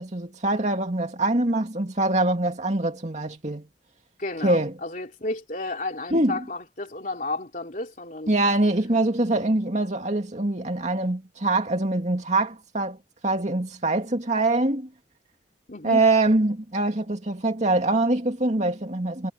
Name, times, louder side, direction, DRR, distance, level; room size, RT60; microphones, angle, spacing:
voice 1, 0.0-3.7 4.4-4.7 6.1-6.4 8.3-13.0 13.2-14.9 15.8-19.3, right 2 dB, 40° right, 2.4 m, -24 dB
voice 2, 4.2-8.3 15.7-16.0, left 2 dB, 50° left, 3.5 m, -32 dB
head